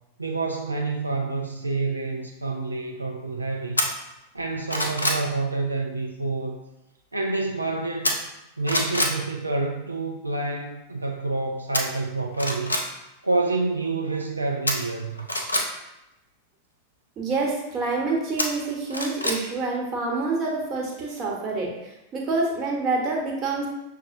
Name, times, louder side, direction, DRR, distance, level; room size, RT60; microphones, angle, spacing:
voice 1, 0.2-3.9 4.3-6.6 7.1-8.2 8.6-12.8 13.2-15.3, right 3 dB, 80° right, 1 dB, 0.3 m, -28 dB
sound 1, 3.8-3.9 4.4-5.2 8.0-8.4 8.7-9.2 11.7-11.8 12.3-12.8 14.7-15.6 18.4-19.4 19.8-19.9, left 1 dB, 80° left, 0.5 m, -25 dB
voice 2, 17.2-23.7, right 3 dB, 30° right, -2 dB, 1.1 m, -27 dB
6.2 x 2.1 x 2.6 m, 0.91 s
figure-of-eight pair, 90°, 0 cm